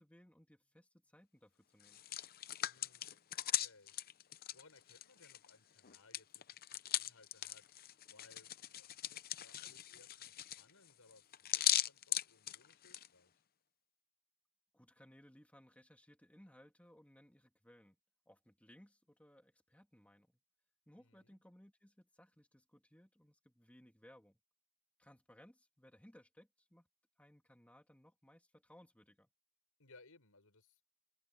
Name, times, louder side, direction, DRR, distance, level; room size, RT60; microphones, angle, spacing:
voice 1, 0.0-2.0 14.7-18.0 18.3-20.4 20.9-24.4 25.0-26.9 27.2-29.3, equal, 5° left, 2.5 m, -63 dB
Hands, 1.8-5.5 5.8-13.1, left 12 dB, 45° left, 0.7 m, -39 dB
voice 2, 2.6-3.9 4.5-13.4 20.9-21.4 29.8-30.8, left 3 dB, 75° left, 5.8 m, -66 dB
open air
head